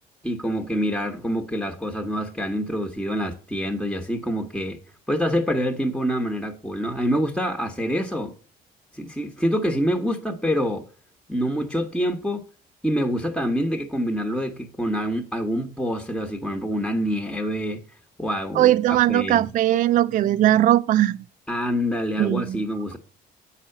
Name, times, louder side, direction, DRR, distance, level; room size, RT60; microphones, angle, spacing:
voice 1, 0.2-4.8 5.1-8.3 8.9-10.9 11.3-12.5 12.8-17.8 18.2-19.4 21.5-23.0, equal, 5° left, 1.1 m, -26 dB
voice 2, 18.5-21.2 22.2-22.6, right 13 dB, 50° right, 0.4 m, -19 dB
8.0 x 5.7 x 6.5 m
cardioid pair, 110°, 17 cm